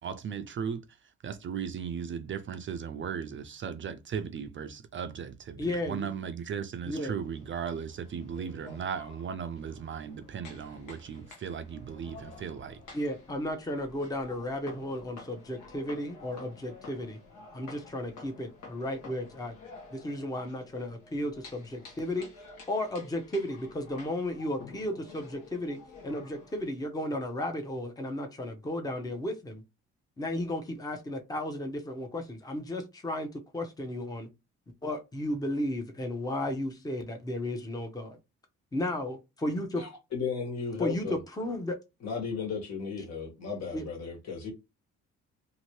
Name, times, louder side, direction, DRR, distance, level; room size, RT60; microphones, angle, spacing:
voice 1, 0.0-0.8 1.2-12.8, right 7 dB, 40° right, 0.4 m, -37 dB
voice 2, 5.6-6.1 6.8-7.1 12.9-17.2 17.5-19.6 19.9-22.3 22.7-25.8 26.0-29.6 30.2-33.3 33.5-34.3 34.8-38.2 38.7-39.8 40.8-41.8 43.7-43.9, left 1 dB, 10° left, 0.7 m, -34 dB
sound 1, 7.1-26.7, left 3 dB, 80° left, 1.1 m, -51 dB
voice 3, 39.8-41.2 42.0-44.5, left 5 dB, 60° left, 1.5 m, -35 dB
2.8 x 2.6 x 3.0 m
cardioid pair, 90°, 30 cm